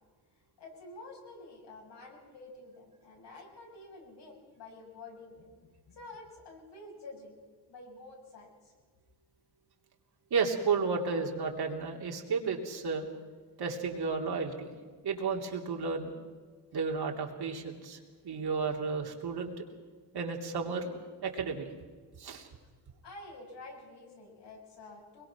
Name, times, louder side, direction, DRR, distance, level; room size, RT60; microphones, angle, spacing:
voice 1, 0.6-7.4 7.7-8.7 23.0-25.2, left 2 dB, 75° left, -1 dB, 7.6 m, -49 dB
voice 2, 10.3-13.1 13.6-14.7 15.0-16.1 16.7-18.0 18.2-19.5 20.1-21.7 22.2-22.5, right 5 dB, 60° right, 1 dB, 3.1 m, -32 dB
22.5 x 22.0 x 6.2 m, 1.5 s
cardioid pair, 100°, 42 cm